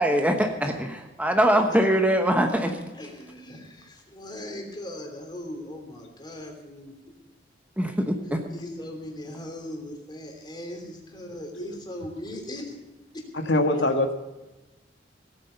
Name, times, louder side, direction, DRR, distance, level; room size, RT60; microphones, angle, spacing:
voice 1, 0.0-2.8 7.8-8.4, right 1 dB, 10° right, 5 dB, 1.0 m, -23 dB
voice 2, 2.9-6.9 8.5-12.6, left 1 dB, 25° left, 2 dB, 3.1 m, -39 dB
voice 3, 13.3-14.1, left 1 dB, 85° left, 5 dB, 1.5 m, -24 dB
17.0 x 9.0 x 6.9 m, 1.1 s
head